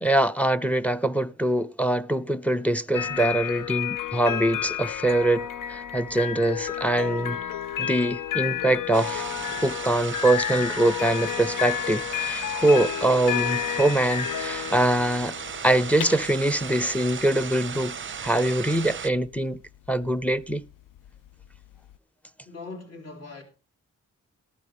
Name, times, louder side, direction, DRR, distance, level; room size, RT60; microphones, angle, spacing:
voice 1, 0.0-7.4 7.8-9.2 9.6-15.4 15.6-18.0 18.2-19.6 19.9-20.6, right 1 dB, 5° left, 0.6 m, -23 dB
sound 1, 2.9-22.0, left 11 dB, 80° left, 0.5 m, -31 dB
sound 2, 8.9-19.1, right 7 dB, 40° right, 0.5 m, -36 dB
voice 2, 22.5-23.4, left 3 dB, 50° left, 3.8 m, -40 dB
13.5 x 12.5 x 3.5 m
cardioid pair, 60°, 32 cm